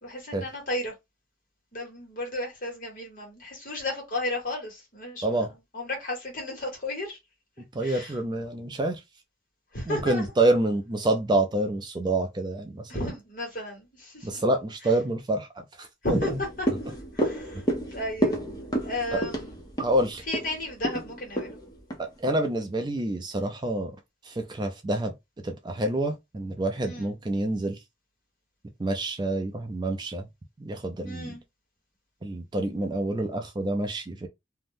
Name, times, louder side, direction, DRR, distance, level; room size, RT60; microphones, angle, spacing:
voice 1, 0.0-0.9 1.7-5.5 5.7-7.2 7.8-8.1 9.7-10.3 12.9-14.4 16.0-16.3 16.6-16.7 17.1-17.6 17.9-19.6 20.3-21.6 26.8-27.1 31.0-31.4, left 1 dB, 45° left, 1.3 m, -34 dB
voice 2, 7.7-9.0 9.9-12.9 14.2-15.5 15.8-16.2 19.1-19.2 19.8-20.2 22.0-23.9 24.2-25.1 25.4-27.8 28.8-30.3 30.6-31.3 32.2-34.3, right 1 dB, 20° right, 0.4 m, -27 dB
sound 1, 16.1-22.6 23.0-23.1, right 1 dB, 20° left, 0.6 m, -31 dB
2.6 x 2.1 x 3.4 m
head